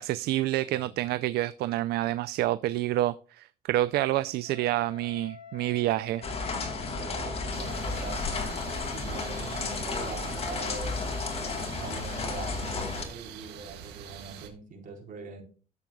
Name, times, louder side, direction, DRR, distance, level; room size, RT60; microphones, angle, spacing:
voice 1, 0.0-6.2, right 15 dB, 70° right, 0.4 m, -28 dB
voice 2, 0.7-1.0 6.9-8.3 8.9-11.2 11.7-15.4, right 4 dB, 55° right, 4.2 m, -42 dB
Wind instrument woodwind instrument, 4.4-9.1, left 5 dB, 55° left, 1.3 m, -48 dB
sound 1, 6.2-13.0, left 3 dB, 35° left, 2.3 m, -33 dB
sound 2, 7.5-14.5, right 8 dB, 90° right, 1.8 m, -45 dB
13.0 x 7.5 x 2.3 m
cardioid pair, 110°, 17 cm